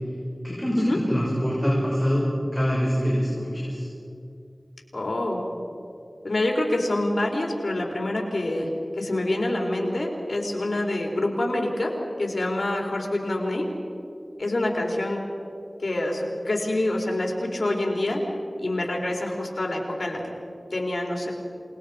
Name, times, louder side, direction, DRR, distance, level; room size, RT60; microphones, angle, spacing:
voice 1, 0.4-3.9, equal, 10° left, -6 dB, 6.4 m, -24 dB
voice 2, 4.9-5.4 6.2-11.9 12.2-13.7 14.4-15.2 15.8-18.2 18.6-20.2 20.7-21.3, left 1 dB, 70° left, 0 dB, 3.9 m, -26 dB
28.5 x 20.0 x 5.1 m, 2.5 s
wide cardioid pair, 50°, 0 cm